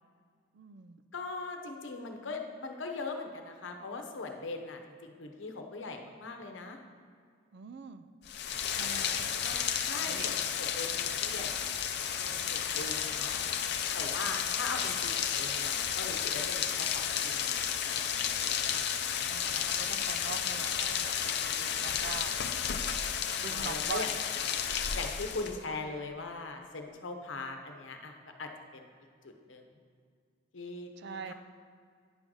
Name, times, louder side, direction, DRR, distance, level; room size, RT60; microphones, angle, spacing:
voice 1, 0.5-1.0 7.5-8.1 8.7-9.3 10.0-10.7 12.7-12.8 19.2-22.4 23.4-24.0 31.0-31.3, right 6 dB, 60° right, 11 dB, 0.4 m, -43 dB
voice 2, 1.1-6.8 9.4-9.6 9.9-13.4 13.9-18.1 18.4-18.6 23.4-24.1 24.9-28.8 29.2-29.6 30.5-31.3, left 3 dB, 85° left, 4 dB, 0.9 m, -41 dB
Rain, 8.2-25.6, left 8 dB, 60° left, 0.5 m, -32 dB
9.7 x 3.8 x 6.2 m, 2.2 s
head